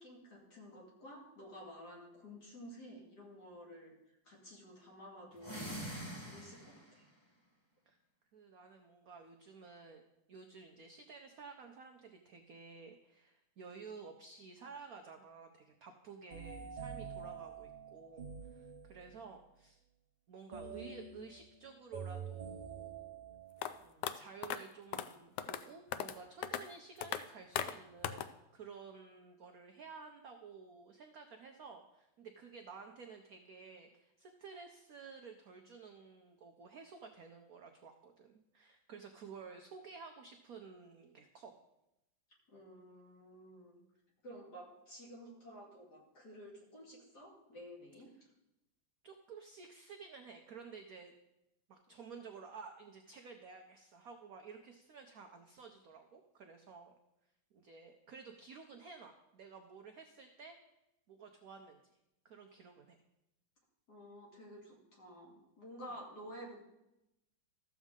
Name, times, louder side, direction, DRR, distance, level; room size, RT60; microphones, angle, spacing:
voice 1, 0.0-3.9 4.2-5.8 6.2-7.1 42.5-43.8 44.2-48.1 63.9-66.7, equal, 50° left, -3 dB, 2.7 m, -52 dB
sound 1, 5.3-7.0, equal, 15° left, 1.0 m, -44 dB
voice 2, 8.3-10.0 10.3-19.8 20.3-23.1 23.8-41.6 49.0-51.1 51.7-56.9 57.5-60.6 61.1-61.8 62.2-63.0, right 5 dB, 70° right, 4 dB, 0.8 m, -53 dB
sound 2, 16.3-19.3 20.5-23.8, right 6 dB, 85° right, 0.4 m, -47 dB
sound 3, 23.6-23.7 24.0-24.1 24.4-24.6 24.9-25.1 25.4-25.6 25.9-26.2 26.4-26.6 27.0-27.2 27.6-27.7 28.0-28.3, left 10 dB, 80° left, 0.9 m, -37 dB
13.5 x 7.2 x 3.7 m, 0.89 s
omnidirectional pair, 2.4 m